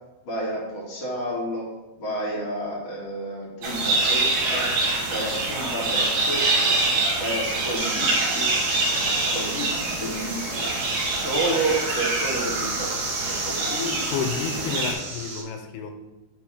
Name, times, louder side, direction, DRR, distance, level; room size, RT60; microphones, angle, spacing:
voice 1, 0.2-1.6 2.0-4.7 5.1-6.8 7.2-8.5 9.1-10.7 11.1-14.2 14.5-14.9, right 1 dB, 50° left, -6 dB, 2.8 m, -31 dB
sound 1, 3.6-14.9, right 2 dB, 75° right, 3.1 m, -25 dB
sound 2, 7.7-15.4, right 3 dB, 60° right, 2.2 m, -33 dB
voice 2, 14.1-15.9, left 6 dB, 85° left, 5 dB, 2.6 m, -30 dB
6.7 x 3.5 x 4.9 m, 1.1 s
omnidirectional pair, 4.6 m